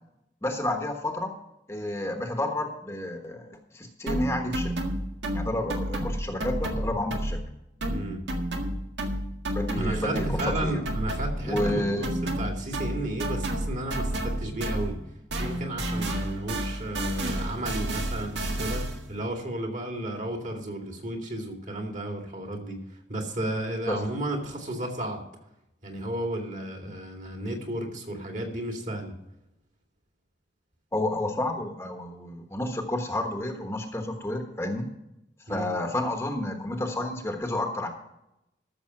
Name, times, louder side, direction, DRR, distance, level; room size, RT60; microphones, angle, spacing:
voice 1, 0.4-1.3 1.7-4.7 5.3-7.4 9.5-10.9 11.4-12.1 23.9-24.0 30.9-34.9 35.5-37.9, left 1 dB, 15° left, 3 dB, 1.2 m, -30 dB
sound 1, 4.1-7.5 7.8-15.1 15.3-19.1, right 1 dB, 80° right, 1.8 m, -31 dB
voice 2, 7.9-8.2 9.7-15.0 15.4-25.2 25.8-29.1 35.5-35.7, right 1 dB, 45° right, 2 dB, 2.5 m, -33 dB
13.5 x 7.0 x 5.9 m, 0.86 s
head